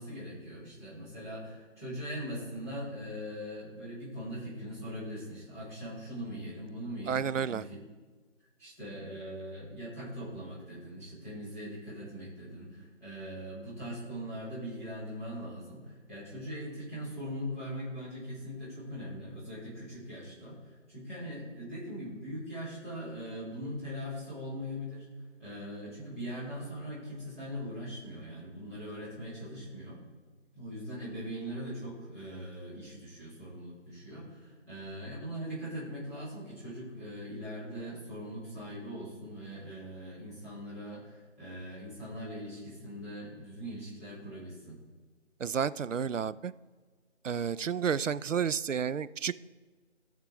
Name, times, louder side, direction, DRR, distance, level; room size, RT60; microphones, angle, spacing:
voice 1, 0.0-7.8 8.6-25.1 25.4-30.0 30.5-44.8, equal, 10° right, -12 dB, 3.4 m, -41 dB
voice 2, 7.1-7.6 45.4-46.5 47.2-49.3, right 7 dB, 75° right, 18 dB, 0.5 m, -31 dB
18.0 x 6.5 x 3.5 m, 1.4 s
figure-of-eight pair, 170°, 38 cm